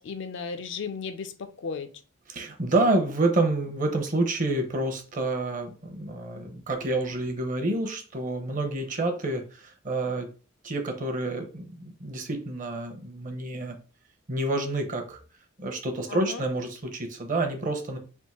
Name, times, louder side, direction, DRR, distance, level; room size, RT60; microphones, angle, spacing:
voice 1, 0.0-1.9 16.1-16.4, left 5 dB, 60° left, 0.4 m, -35 dB
voice 2, 2.3-10.3 10.6-13.8 14.3-15.2 15.6-18.0, right 2 dB, 40° right, 0.7 m, -28 dB
3.5 x 2.6 x 4.2 m
head